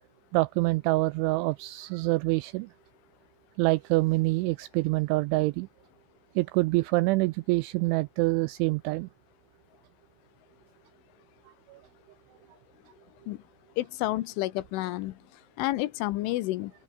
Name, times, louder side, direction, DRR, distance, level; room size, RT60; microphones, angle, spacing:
voice 1, 0.3-2.7 3.6-5.7 6.4-9.1 11.7-11.8, right 22 dB, 90° right, 2.7 m, -26 dB
voice 2, 13.8-15.2 15.6-16.7, left 17 dB, 75° left, 3.3 m, -30 dB
open air
omnidirectional pair, 5.9 m